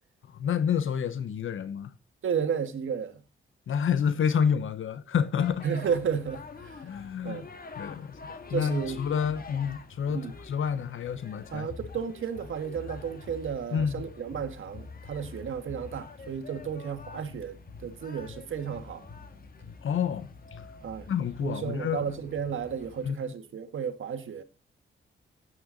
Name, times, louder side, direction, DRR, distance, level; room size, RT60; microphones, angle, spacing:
voice 1, 0.3-1.9 3.7-5.7 6.8-7.5 7.8-8.2 8.5-11.7 13.7-14.0 19.8-20.7 21.1-22.1 23.0-23.2, left 7 dB, 70° left, 0.9 m, -29 dB
voice 2, 2.2-3.2 5.6-6.8 7.2-7.5 8.5-9.0 10.1-10.3 11.5-19.0 20.8-21.1 21.4-24.4, right 7 dB, 70° right, 1.6 m, -33 dB
sound 1, 5.4-23.1, left 4 dB, 45° left, 2.0 m, -46 dB
14.5 x 9.3 x 3.9 m
wide cardioid pair, 115°, 21 cm